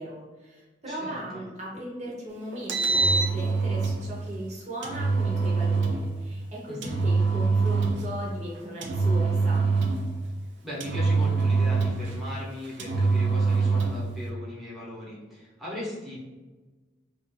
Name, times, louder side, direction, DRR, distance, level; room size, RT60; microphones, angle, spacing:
voice 1, 0.0-9.7, right 1 dB, 40° right, -4 dB, 0.7 m, -37 dB
voice 2, 0.9-1.4 6.7-7.0 10.6-16.2, left 1 dB, ahead, -7 dB, 0.8 m, -38 dB
Engine, 2.5-4.0 4.8-6.0 6.8-8.1 8.8-10.1 10.8-12.1 12.8-14.0, right 4 dB, 70° right, 0.4 m, -24 dB
2.8 x 2.4 x 3.1 m, 1.2 s
head